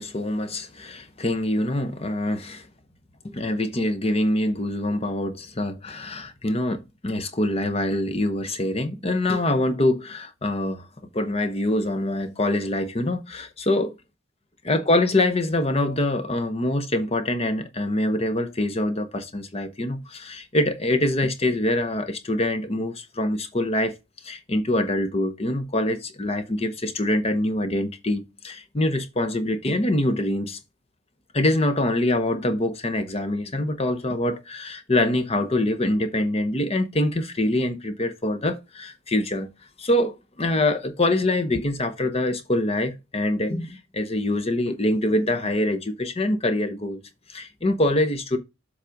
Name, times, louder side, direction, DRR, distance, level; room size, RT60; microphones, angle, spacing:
voice 1, 0.0-2.7 3.2-10.9 11.1-13.9 14.6-24.0 24.2-30.6 31.3-39.5 39.8-47.0 47.3-48.4, left 1 dB, 30° left, 0.8 m, -24 dB
7.4 x 3.5 x 5.1 m
head